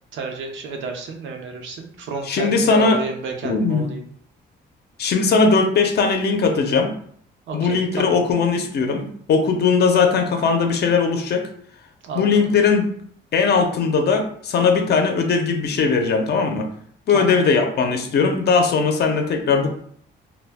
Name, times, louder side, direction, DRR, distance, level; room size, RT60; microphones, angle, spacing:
voice 1, 0.1-4.0 7.5-8.2 12.0-12.2 17.1-17.4, right 4 dB, 75° right, 3 dB, 0.6 m, -31 dB
voice 2, 2.3-3.0 3.4-3.9 5.0-6.9 7.5-11.5 12.1-12.9 13.3-16.7 17.1-19.7, left 5 dB, 55° left, 4 dB, 0.6 m, -19 dB
2.2 x 2.1 x 3.3 m, 0.62 s
cardioid pair, 90°, 20 cm